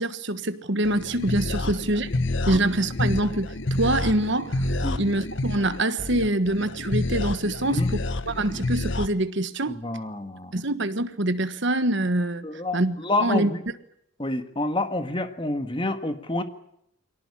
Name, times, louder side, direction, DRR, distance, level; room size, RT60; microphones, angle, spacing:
voice 1, 0.0-2.1 2.5-4.6 5.0-9.8 10.5-12.4 12.7-13.5, right 1 dB, 55° right, 1.4 m, -25 dB
sound 1, 0.8-9.1, left 2 dB, 55° left, 1.1 m, -28 dB
voice 2, 9.7-10.5 12.4-13.6 14.2-16.4, left 2 dB, 25° left, 1.6 m, -28 dB
23.5 x 18.0 x 9.9 m
head